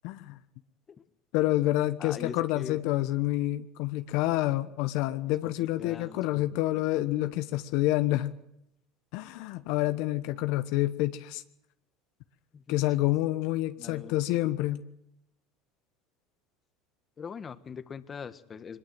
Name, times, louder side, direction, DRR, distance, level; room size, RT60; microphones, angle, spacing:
voice 1, 0.0-0.4 1.3-8.3 9.1-11.4 12.7-14.8, left 16 dB, 70° left, 10 dB, 1.1 m, -28 dB
voice 2, 2.0-2.8 5.4-6.6 12.5-13.1 13.8-14.2 17.2-18.8, left 6 dB, 30° left, 11 dB, 1.5 m, -42 dB
23.0 x 21.0 x 7.8 m, 0.80 s
supercardioid pair, 100°, 0 cm